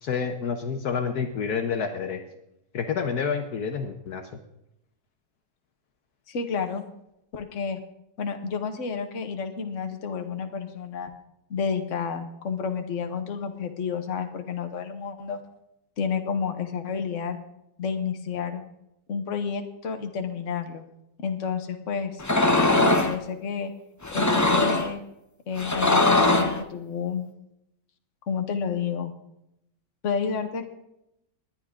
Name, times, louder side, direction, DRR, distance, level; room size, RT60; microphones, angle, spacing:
voice 1, 0.0-2.2 2.7-4.2, left 6 dB, 65° left, 6 dB, 1.4 m, -28 dB
voice 2, 6.3-6.8 7.3-7.8 8.2-11.1 11.5-15.4 16.0-17.4 17.8-18.6 19.1-20.8 21.2-22.2 22.8-23.7 24.1-25.0 25.5-27.2 28.3-29.1 30.0-30.7, left 6 dB, 50° left, 6 dB, 1.4 m, -30 dB
sound 1, 22.2-23.1 24.0-24.9 25.6-26.6, left 2 dB, 25° left, 0.4 m, -21 dB
19.5 x 10.5 x 3.7 m, 0.83 s
omnidirectional pair, 1.9 m